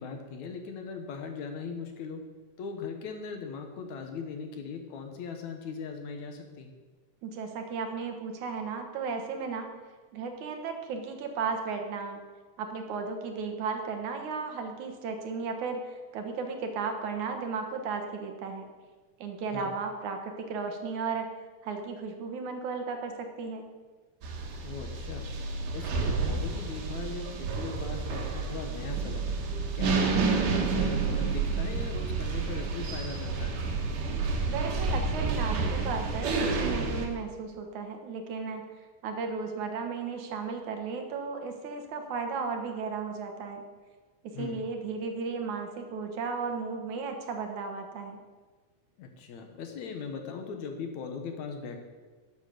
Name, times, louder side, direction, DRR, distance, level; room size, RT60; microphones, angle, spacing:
voice 1, 0.0-2.2 2.6-6.7 19.5-19.7 24.6-25.3 25.7-29.3 29.7-33.6 44.3-44.6 49.0-51.8, left 5 dB, 70° left, 4 dB, 2.5 m, -39 dB
voice 2, 7.2-9.7 10.1-12.2 12.6-18.6 19.2-21.3 21.6-23.7 34.5-38.6 39.0-43.6 44.3-48.2, right 5 dB, 75° right, 5 dB, 2.6 m, -35 dB
sound 1, 24.2-37.1, right 4 dB, 90° right, 3.1 m, -30 dB
12.5 x 8.2 x 6.8 m, 1.4 s
omnidirectional pair, 3.6 m